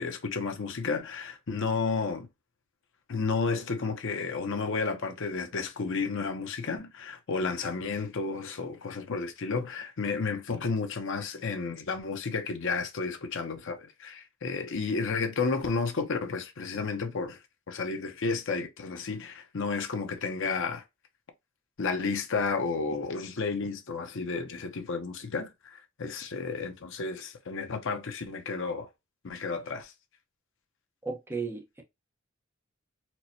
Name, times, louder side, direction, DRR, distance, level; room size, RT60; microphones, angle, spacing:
voice 1, 0.0-2.3 3.1-17.4 17.7-20.8 21.8-28.9 29.2-29.9, left 4 dB, 60° left, 0.7 m, -32 dB
voice 2, 31.0-31.8, right 4 dB, 10° right, 0.8 m, -35 dB
4.5 x 2.1 x 2.7 m
head